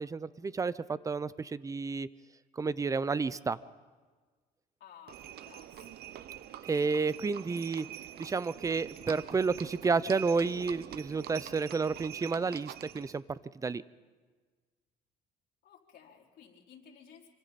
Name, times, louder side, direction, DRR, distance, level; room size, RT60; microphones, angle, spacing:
voice 1, 0.0-2.1 2.5-3.6 6.6-7.9 8.2-13.8, right 4 dB, 20° right, 18 dB, 0.6 m, -31 dB
voice 2, 4.8-6.2 15.6-17.3, left 8 dB, 65° left, -2 dB, 4.1 m, -56 dB
Livestock farm animals working animals, 5.1-13.2, right 12 dB, 70° right, 0.9 m, -45 dB
26.0 x 25.5 x 4.2 m, 1.4 s
cardioid pair, 110°, 17 cm